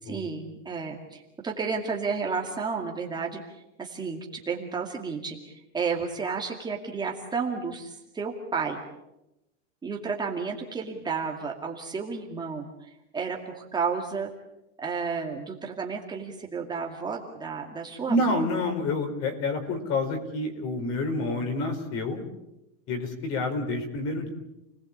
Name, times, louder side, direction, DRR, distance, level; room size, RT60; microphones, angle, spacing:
voice 1, 0.1-4.2 4.5-8.8 9.8-14.3 14.8-18.4, right 5 dB, 10° right, 0 dB, 2.2 m, -32 dB
voice 2, 18.1-22.2 22.9-24.3, left 2 dB, 40° left, 6 dB, 4.8 m, -28 dB
29.5 x 19.0 x 8.6 m, 0.89 s
supercardioid pair, 165°, 37 cm